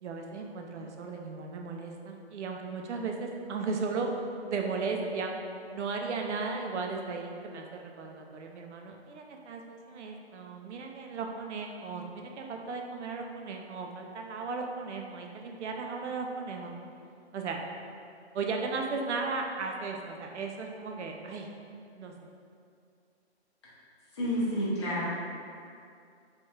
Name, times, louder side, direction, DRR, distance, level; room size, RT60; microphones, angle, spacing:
voice 1, 0.0-4.1 4.5-5.3 5.7-16.7 17.3-17.6 18.3-21.5 22.0-22.1, right 4 dB, 80° right, 2 dB, 0.5 m, -36 dB
voice 2, 24.1-25.1, equal, 25° left, -9 dB, 0.6 m, -29 dB
3.4 x 2.3 x 2.7 m, 2.4 s
hypercardioid pair, 165°, 34 cm